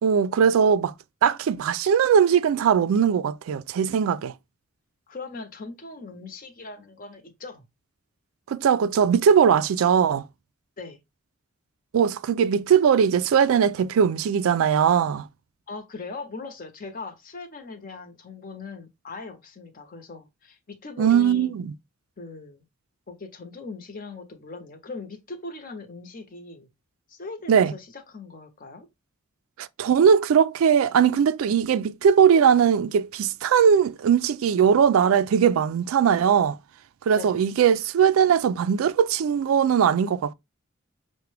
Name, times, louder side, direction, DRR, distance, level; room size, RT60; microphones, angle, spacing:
voice 1, 0.0-0.9 1.2-4.3 8.5-10.2 11.9-15.3 21.0-21.7 27.5-27.7 29.6-36.6 37.1-40.3, right 7 dB, 75° right, 0.3 m, -20 dB
voice 2, 5.1-7.6 10.8-11.0 15.7-21.5 22.2-22.6 23.1-26.7 27.1-28.9 37.1-37.3, left 3 dB, 45° left, 0.8 m, -40 dB
5.7 x 2.1 x 3.2 m
head